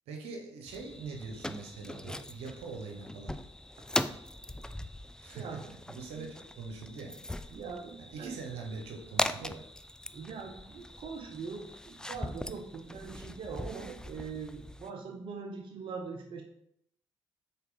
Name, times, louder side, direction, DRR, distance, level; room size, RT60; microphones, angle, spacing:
voice 1, 0.1-3.4 5.2-7.1 8.0-9.6, right 4 dB, 80° right, 2 dB, 1.1 m, -43 dB
sound 1, 0.7-14.9, left 1 dB, 5° left, 0.4 m, -40 dB
voice 2, 5.3-5.6 6.1-6.3 7.5-8.4 10.1-16.4, right 5 dB, 55° right, 3 dB, 0.7 m, -42 dB
5.6 x 4.2 x 3.9 m, 0.75 s
hypercardioid pair, 50°, 10 cm